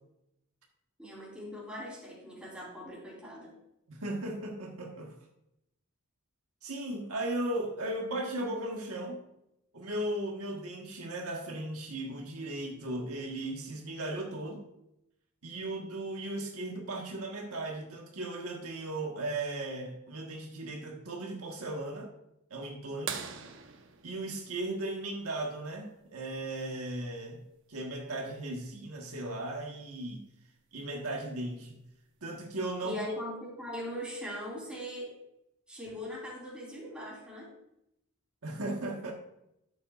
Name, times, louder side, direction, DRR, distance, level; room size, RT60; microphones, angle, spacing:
voice 1, 1.0-3.5 32.8-35.2 35.7-37.5, left 1 dB, 5° right, -6 dB, 3.7 m, -40 dB
voice 2, 3.9-5.1 6.6-9.2 9.7-14.6 15.4-22.1 22.5-23.2 24.0-27.4 27.7-30.2 30.7-31.8 32.2-33.0 38.4-39.1, right 1 dB, 75° right, 0 dB, 1.4 m, -36 dB
sound 1, 23.1-25.5 27.4-27.5 29.8-29.9 31.6-31.9 32.6-32.7, right 7 dB, 55° right, 0.8 m, -42 dB
11.5 x 7.7 x 2.5 m, 0.83 s
head